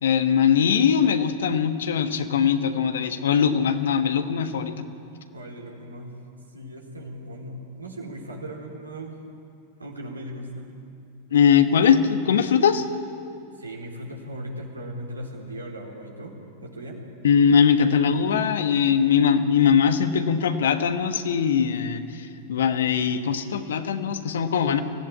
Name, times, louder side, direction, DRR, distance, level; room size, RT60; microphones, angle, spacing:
voice 1, 0.0-4.8 11.3-12.9 17.2-24.8, left 7 dB, 65° left, 9 dB, 1.4 m, -21 dB
voice 2, 5.3-6.2 6.5-9.2 9.8-10.7 13.6-16.3 16.6-17.0, right 1 dB, 80° right, -1 dB, 4.0 m, -37 dB
24.5 x 16.0 x 8.8 m, 2.6 s
figure-of-eight pair, 90°, 0 cm